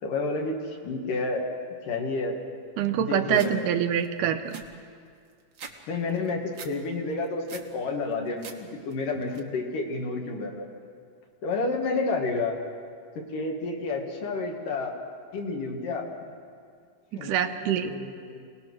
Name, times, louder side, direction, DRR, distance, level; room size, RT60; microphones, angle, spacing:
voice 1, 0.0-1.4 1.8-2.4 3.0-3.7 5.9-10.7 11.4-12.6 13.2-14.9 15.3-16.0 17.1-17.3 17.9-18.5, left 3 dB, 70° left, 1 dB, 3.7 m, -30 dB
voice 2, 2.8-4.6 17.1-17.9, right 9 dB, 80° right, 7 dB, 2.4 m, -25 dB
sound 1, 3.3-3.5 4.0-4.1 4.3-5.8 6.1-6.7 7.1-7.7 8.1-8.6 8.9-9.4, right 6 dB, 50° right, 1.5 m, -44 dB
27.0 x 19.0 x 6.3 m, 2.2 s
omnidirectional pair, 3.9 m